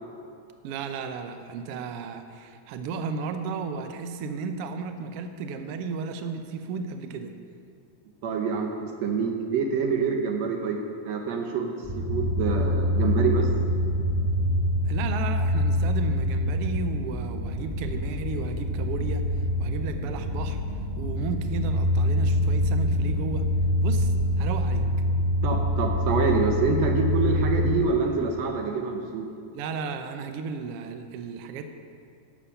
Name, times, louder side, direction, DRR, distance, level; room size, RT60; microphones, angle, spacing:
voice 1, 0.6-7.3 14.9-19.2 19.6-20.6 21.0-23.5 23.8-24.9 29.5-31.7, right 5 dB, 85° right, 7 dB, 1.3 m, -34 dB
voice 2, 8.2-10.8 11.0-13.5 25.4-29.3, right 5 dB, 70° right, 3 dB, 1.8 m, -26 dB
sound 1, 11.8-27.8, left 1 dB, 5° right, 1.2 m, -25 dB
12.5 x 7.2 x 5.7 m, 2.4 s
omnidirectional pair, 3.5 m